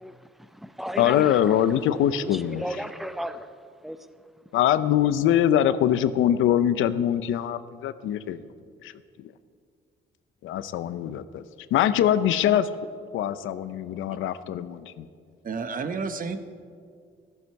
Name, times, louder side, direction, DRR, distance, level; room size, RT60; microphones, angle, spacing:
voice 1, 0.0-1.8 2.2-3.5 3.8-4.0, equal, ahead, 11 dB, 0.8 m, -36 dB
voice 2, 1.0-2.6 4.5-8.4 8.8-8.9 10.4-11.4 11.7-12.7 13.1-15.1, left 10 dB, 85° left, 13 dB, 0.7 m, -23 dB
voice 3, 15.4-16.4, right 4 dB, 45° right, 9 dB, 1.1 m, -30 dB
15.0 x 14.0 x 4.7 m, 2.2 s
cardioid pair, 90°, 20 cm